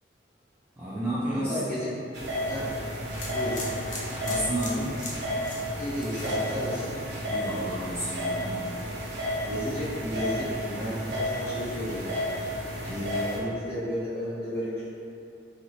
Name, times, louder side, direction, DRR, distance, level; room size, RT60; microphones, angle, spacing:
voice 1, 0.8-1.7 4.2-5.0 7.3-8.7, right 1 dB, 15° right, -12 dB, 0.4 m, -31 dB
voice 2, 1.3-1.9 2.5-2.7 3.3-3.6 5.8-7.0 9.5-12.3 12.8-14.9, equal, 15° left, -13 dB, 1.0 m, -33 dB
sound 1, 2.1-13.4, equal, 65° right, 0.6 m, -32 dB
sound 2, 3.1-7.2 7.5-7.9, left 2 dB, 45° left, 0.5 m, -39 dB
2.8 x 2.4 x 2.8 m, 2.5 s
head